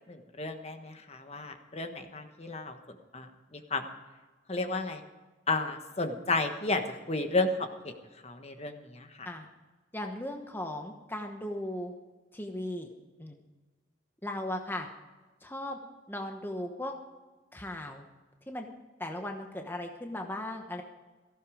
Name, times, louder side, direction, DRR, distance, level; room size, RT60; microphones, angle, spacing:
voice 1, 0.1-2.8 3.1-3.9 4.5-5.0 5.5-6.8 7.1-7.9 8.2-9.3, left 3 dB, 35° left, 7 dB, 1.2 m, -32 dB
voice 2, 9.9-11.9 12.3-12.9 13.2-13.4 14.2-14.9 15.4-15.8 16.1-16.9 17.5-18.0 18.5-18.7 19.0-20.8, left 1 dB, 10° left, 3 dB, 1.1 m, -37 dB
17.5 x 15.0 x 5.0 m, 1.2 s
head